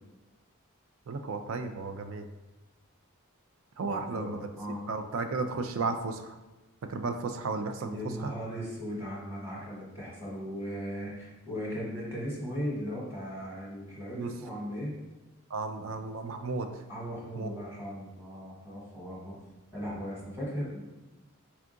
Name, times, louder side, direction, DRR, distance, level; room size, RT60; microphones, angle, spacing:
voice 1, 1.1-2.2 3.8-4.5 4.9-6.4 6.9-8.3 14.1-14.3 15.5-16.7 17.3-17.5, right 4 dB, 60° right, 7 dB, 0.4 m, -34 dB
voice 2, 3.9-4.8 7.8-14.9 16.9-19.3 19.7-20.8, equal, 10° right, -6 dB, 1.1 m, -37 dB
4.4 x 2.4 x 3.7 m, 1.1 s
head